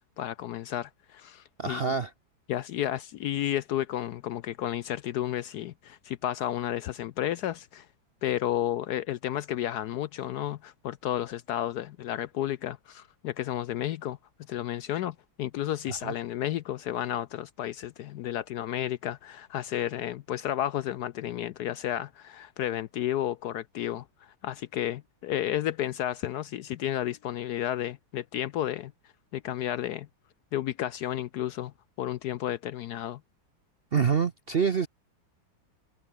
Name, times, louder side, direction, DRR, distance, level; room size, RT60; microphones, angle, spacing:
voice 1, 0.2-1.9 2.5-7.9 8.2-14.2 14.5-28.9 29.3-30.1 30.5-33.2, left 12 dB, 70° left, 1.0 m, -32 dB
voice 2, 1.6-2.1 15.9-16.1 33.9-34.9, right 6 dB, 50° right, 0.7 m, -26 dB
omnidirectional pair, 2.1 m